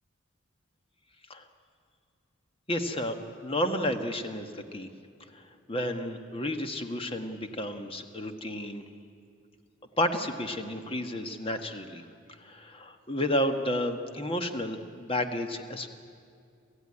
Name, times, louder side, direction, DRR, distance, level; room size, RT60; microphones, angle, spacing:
voice 1, 2.7-3.2 3.4-4.9 5.3-5.4 5.7-8.8 10.0-12.0 12.4-15.9, left 1 dB, 25° left, 7 dB, 1.3 m, -31 dB
27.0 x 15.5 x 9.8 m, 2.4 s
head